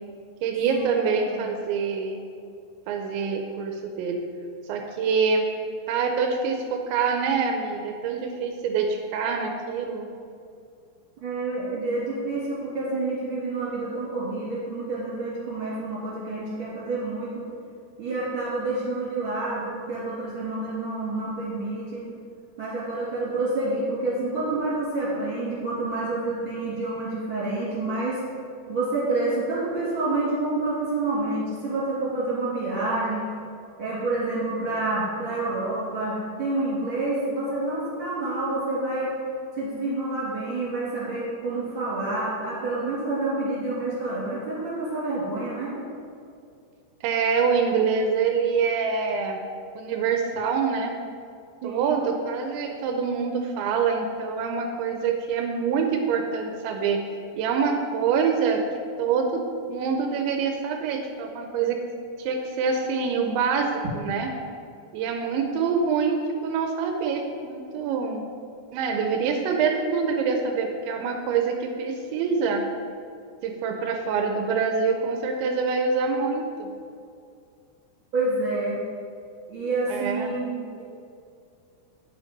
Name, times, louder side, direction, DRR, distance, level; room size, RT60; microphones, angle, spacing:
voice 1, 0.4-2.2 2.9-4.2 4.7-5.5 5.9-10.1 47.0-49.4 49.8-50.9 51.6-57.0 57.3-58.6 59.0-59.4 59.7-61.8 62.2-64.3 64.9-68.2 68.7-72.6 73.4-76.7 79.9-80.3, right 5 dB, 80° right, 4 dB, 2.7 m, -25 dB
voice 2, 11.2-17.5 18.0-22.1 22.6-28.2 28.7-33.2 33.8-39.1 39.6-45.7 51.6-52.0 78.1-78.8 79.5-80.8, right 2 dB, 35° right, -8 dB, 2.6 m, -28 dB
8.2 x 8.0 x 5.2 m, 2.4 s
omnidirectional pair, 5.7 m